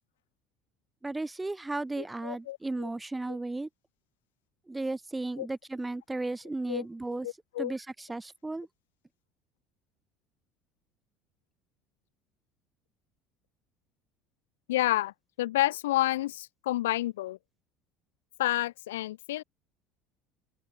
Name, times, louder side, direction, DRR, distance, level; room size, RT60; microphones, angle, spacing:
voice 1, 1.0-3.7 4.7-7.3 7.6-8.7, right 2 dB, 10° right, 0.8 m, -35 dB
voice 2, 2.0-2.9 5.4-5.5 6.7-6.8 7.2-7.7 14.7-17.4 18.4-19.4, left 15 dB, 65° left, 1.0 m, -30 dB
open air
figure-of-eight pair, 65°, 0 cm